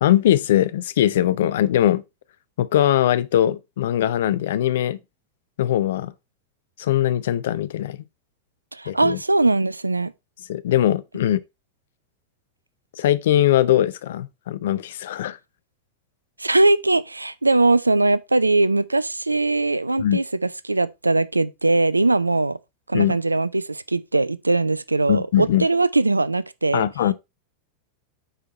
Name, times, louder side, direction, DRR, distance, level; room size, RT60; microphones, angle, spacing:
voice 1, 0.0-2.0 2.6-5.0 5.6-6.1 6.8-8.0 8.9-9.2 10.5-11.4 13.0-15.4 20.0-20.2 22.9-23.2 25.1-25.6 26.7-27.1, left 12 dB, 60° left, 0.6 m, -21 dB
voice 2, 8.7-10.1 16.4-22.6 22.9-26.9, right 2 dB, 80° right, 0.4 m, -20 dB
8.9 x 4.6 x 4.1 m
figure-of-eight pair, 90°, 0 cm